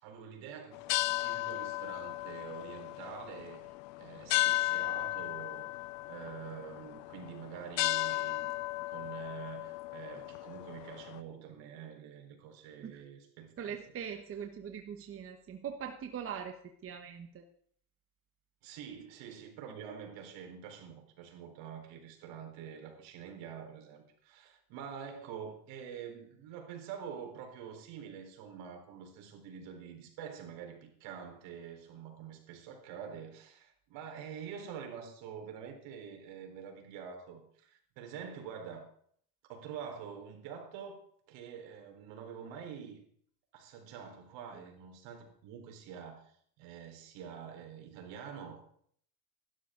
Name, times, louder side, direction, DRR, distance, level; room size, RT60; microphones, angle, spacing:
voice 1, 0.0-5.7 6.0-13.7 18.6-38.8 39.4-43.0 43.5-48.7, right 7 dB, 65° right, 3 dB, 4.1 m, -46 dB
sound 1, 0.7-11.2, left 17 dB, 85° left, 0.6 m, -35 dB
voice 2, 13.6-16.6 16.8-17.4, right 8 dB, 30° right, 6 dB, 1.1 m, -41 dB
16.5 x 12.0 x 3.8 m, 0.62 s
supercardioid pair, 125°, 48 cm